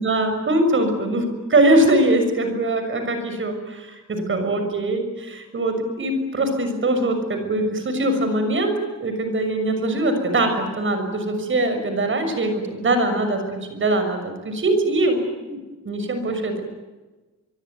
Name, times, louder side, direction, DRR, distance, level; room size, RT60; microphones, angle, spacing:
voice 1, 0.0-8.7 9.0-13.4 13.7-15.6 15.8-16.6, right 1 dB, 40° right, 7 dB, 6.4 m, -22 dB
25.0 x 23.5 x 9.6 m, 1.2 s
wide cardioid pair, 175°, 30 cm